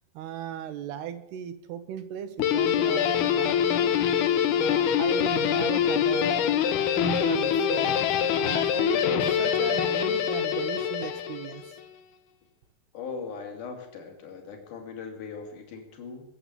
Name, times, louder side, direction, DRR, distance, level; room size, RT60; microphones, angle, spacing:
voice 1, 0.1-3.9 4.6-6.4 6.9-8.0 8.4-11.7, right 10 dB, 75° right, 10 dB, 3.0 m, -36 dB
Guitar, 2.4-11.7, left 9 dB, 75° left, 2.9 m, -24 dB
voice 2, 12.9-16.2, left 5 dB, 50° left, 3 dB, 3.8 m, -39 dB
22.0 x 7.9 x 8.0 m, 0.89 s
omnidirectional pair, 4.8 m